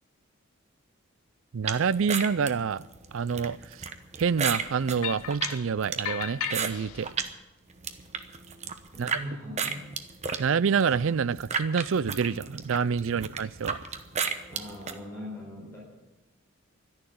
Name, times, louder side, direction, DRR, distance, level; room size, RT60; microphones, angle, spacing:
voice 1, 1.5-2.8 3.1-3.9 4.2-7.1 9.0-9.1 10.4-13.8, right 6 dB, 60° right, 0.4 m, -27 dB
sound 1, 1.7-7.3 7.7-9.2 9.6-15.0, right 6 dB, 30° right, 0.9 m, -33 dB
sound 2, 5.0-5.7 6.0-7.1, left 11 dB, 90° left, 0.5 m, -35 dB
voice 2, 8.9-9.9 13.1-13.2 14.5-15.8, equal, 15° left, 4.5 m, -40 dB
12.5 x 10.5 x 9.3 m
head